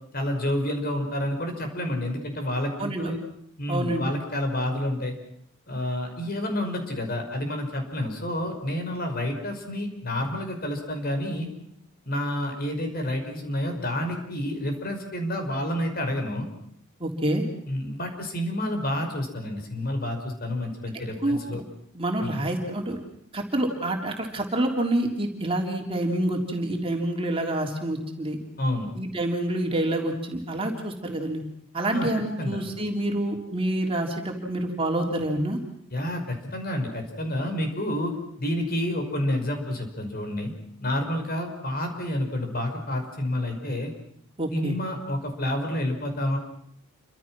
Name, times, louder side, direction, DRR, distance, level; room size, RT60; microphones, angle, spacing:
voice 1, 0.1-3.2 3.6-5.2 5.7-11.5 12.1-16.5 17.7-21.6 22.2-22.4 28.6-28.9 31.9-32.1 32.4-32.6 35.9-38.1 38.4-40.5 40.8-43.9 44.5-46.4, left 1 dB, 45° left, 4 dB, 5.5 m, -29 dB
voice 2, 2.8-3.1 3.7-4.0 17.0-17.5 21.2-21.6 21.9-23.0 23.3-28.4 29.0-31.4 31.7-35.6 44.4-44.7, right 1 dB, 25° right, 2 dB, 3.6 m, -27 dB
29.5 x 25.5 x 6.2 m, 0.69 s
head